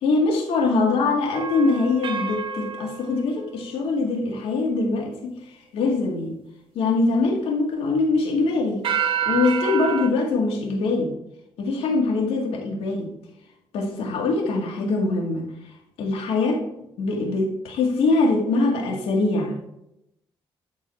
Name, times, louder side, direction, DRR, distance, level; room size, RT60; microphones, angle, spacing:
voice 1, 0.0-5.3 5.7-6.4 6.7-8.8 9.2-11.1 11.6-13.1 13.7-15.4 16.0-16.6 17.0-19.6, left 3 dB, 85° left, 0 dB, 2.1 m, -23 dB
sound 1, 1.3-4.2 8.8-10.1, right 7 dB, 65° right, 1.0 m, -28 dB
10.5 x 4.1 x 4.4 m, 0.82 s
cardioid pair, 100°, 10 cm